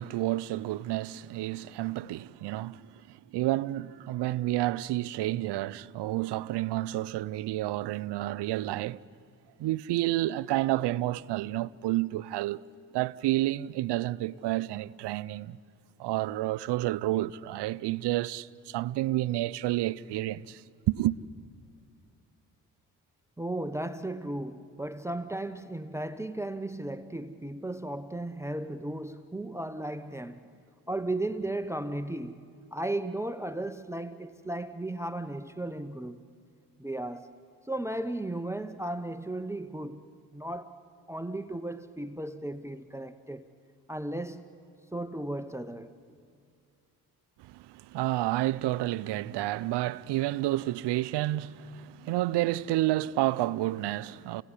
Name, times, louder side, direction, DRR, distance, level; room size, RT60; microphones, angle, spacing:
voice 1, 0.0-9.0 9.6-12.6 12.9-15.6 16.0-21.2 47.4-54.4, right 16 dB, 80° right, 0.7 m, -30 dB
voice 2, 23.4-30.5 30.9-32.4 32.7-36.2 36.8-37.3 37.7-40.0 40.3-40.7 41.1-43.4 43.9-44.4 44.9-45.9, right 1 dB, 5° right, 1.0 m, -35 dB
29.0 x 17.5 x 10.0 m
supercardioid pair, 65°, 41 cm